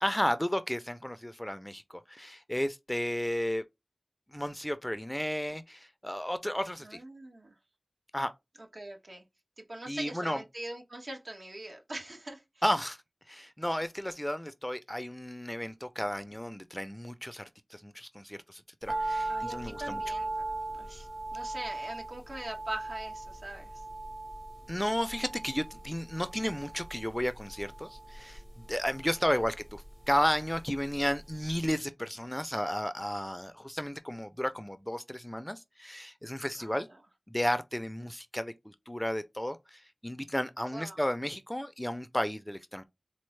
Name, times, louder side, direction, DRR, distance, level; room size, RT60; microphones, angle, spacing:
voice 1, 0.0-3.6 4.3-7.0 8.1-8.3 9.9-10.4 12.6-13.0 13.3-20.0 24.7-36.9 37.3-42.8, equal, 10° left, 0.4 m, -33 dB
voice 2, 6.8-7.5 8.7-9.2 9.6-12.4 19.3-20.3 20.7-23.8 29.2-29.4 36.6-36.8 40.7-41.0, right 1 dB, 70° right, 1.1 m, -42 dB
sound 1, 18.9-31.2 31.4-31.5, right 2 dB, 40° right, 1.2 m, -39 dB
4.2 x 2.0 x 3.1 m
wide cardioid pair, 55°, 0 cm